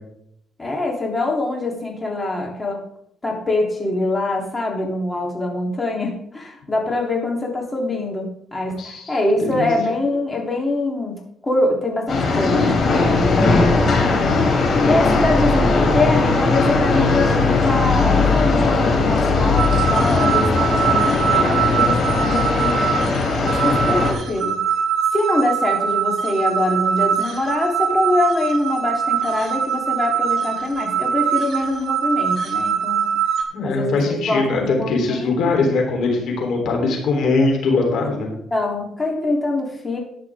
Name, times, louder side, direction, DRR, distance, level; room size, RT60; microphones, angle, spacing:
voice 1, 0.6-2.8 3.2-11.2 11.4-14.2 14.8-22.9 23.4-24.6 25.1-33.0 33.6-35.3 38.5-40.0, left 2 dB, 20° left, -1 dB, 3.3 m, -24 dB
voice 2, 8.8-9.2 9.4-9.7 33.5-38.3, left 3 dB, 75° left, 2 dB, 3.5 m, -21 dB
sound 1, 12.1-24.1, left 3 dB, 55° left, 4.3 m, -18 dB
sound 2, 19.6-33.4, right 8 dB, 60° right, 2.8 m, -22 dB
13.5 x 9.9 x 3.6 m, 0.72 s
cardioid pair, 90°, 0 cm